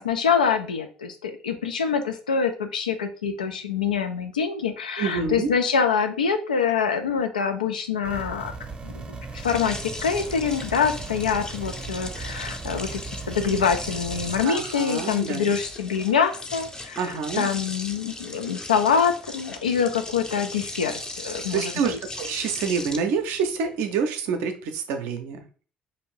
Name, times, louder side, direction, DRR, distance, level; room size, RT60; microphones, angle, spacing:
voice 1, 0.0-8.5 8.8-13.0 13.3-22.0 22.4-22.5, left 6 dB, 85° left, 7 dB, 0.3 m, -25 dB
voice 2, 5.0-5.5 14.4-15.6 17.0-17.5 21.5-25.4, right 6 dB, 65° right, 6 dB, 0.5 m, -27 dB
sound 1, 8.0-14.4, right 4 dB, 25° right, 0.6 m, -37 dB
sound 2, 9.4-23.9, left 2 dB, 15° left, 0.5 m, -38 dB
2.6 x 2.5 x 3.1 m, 0.38 s
figure-of-eight pair, 55°, 4 cm